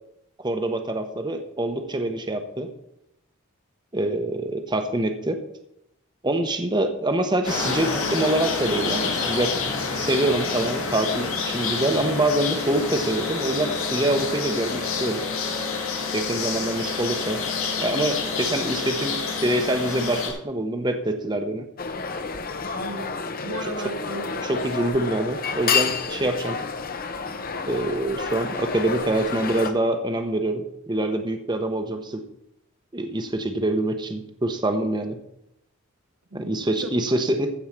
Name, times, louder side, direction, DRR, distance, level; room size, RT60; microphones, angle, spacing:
voice 1, 0.4-2.7 3.9-5.4 6.2-9.5 10.0-15.2 16.1-17.4 17.8-21.6 24.5-26.6 27.7-32.2 32.9-35.2 36.3-37.5, right 1 dB, 20° right, 6 dB, 0.9 m, -25 dB
sound 1, 7.4-20.3, left 4 dB, 85° left, 2.9 m, -28 dB
sound 2, 21.8-29.7, left 5 dB, 45° left, 0.9 m, -29 dB
voice 2, 22.8-24.7 36.3-37.2, right 2 dB, 90° right, 4 dB, 1.8 m, -37 dB
14.0 x 4.8 x 7.3 m, 0.80 s
head